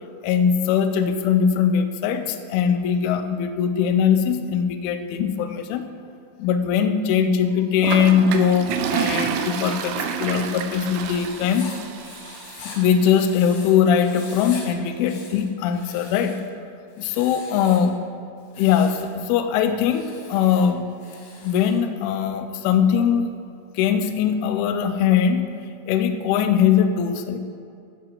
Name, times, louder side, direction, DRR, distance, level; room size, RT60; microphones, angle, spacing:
voice 1, 0.2-5.8 6.4-11.7 12.6-16.4 17.0-18.0 18.6-20.9 21.4-23.3 23.8-25.5 25.9-27.4, left 7 dB, 80° left, 8 dB, 2.4 m, -21 dB
Toilet flush, 7.8-12.9, right 7 dB, 85° right, 2.0 m, -28 dB
Writing, 9.0-13.7 13.9-14.6 14.9-16.5 16.9-17.9 18.4-19.1 19.8-21.8, left 4 dB, 60° left, 3.2 m, -43 dB
12.5 x 7.7 x 4.6 m, 2.5 s
omnidirectional pair, 4.9 m